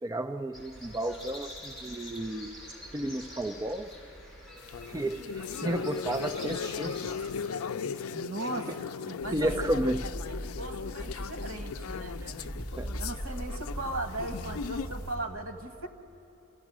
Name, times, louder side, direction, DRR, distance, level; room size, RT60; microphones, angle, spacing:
voice 1, 0.0-2.5 2.9-3.9 4.9-7.1 9.3-10.1 12.2-12.5 12.8-12.9, right 1 dB, 15° right, 7 dB, 0.4 m, -32 dB
sound 1, 0.5-7.5, left 1 dB, ahead, 5.2 m, -46 dB
sound 2, 4.6-15.1, left 6 dB, 90° left, 0.4 m, -37 dB
voice 2, 8.1-8.7 9.2-9.7 10.3-12.6 13.0-15.9, right 2 dB, 85° right, 7 dB, 1.4 m, -38 dB
sound 3, 9.2-15.3, equal, 20° left, 2.8 m, -39 dB
27.5 x 15.5 x 6.1 m, 2.9 s
head